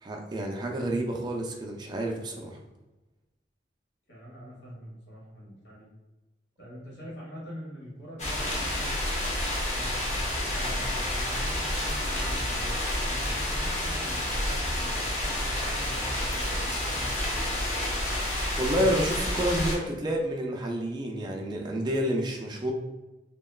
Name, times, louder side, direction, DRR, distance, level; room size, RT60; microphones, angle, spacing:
voice 1, 0.0-2.6 18.6-22.7, equal, 25° right, 1 dB, 0.3 m, -29 dB
voice 2, 4.1-5.9 6.6-9.0 9.7-12.7 13.1-17.6, equal, 80° left, -5 dB, 1.2 m, -44 dB
sound 1, 8.2-19.8, left 1 dB, 40° left, 0.6 m, -29 dB
2.9 x 2.2 x 2.3 m, 1.1 s
head